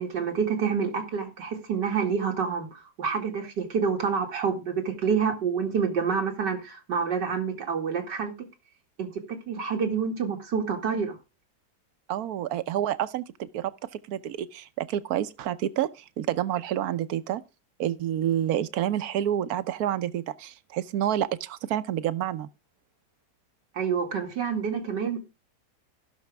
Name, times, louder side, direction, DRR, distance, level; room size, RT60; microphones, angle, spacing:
voice 1, 0.0-8.5 9.0-11.2 23.7-25.2, right 6 dB, 90° right, 2.7 m, -28 dB
voice 2, 12.1-17.4 17.8-22.5, right 11 dB, 65° right, 1.2 m, -29 dB
16.5 x 6.3 x 3.5 m
omnidirectional pair, 1.8 m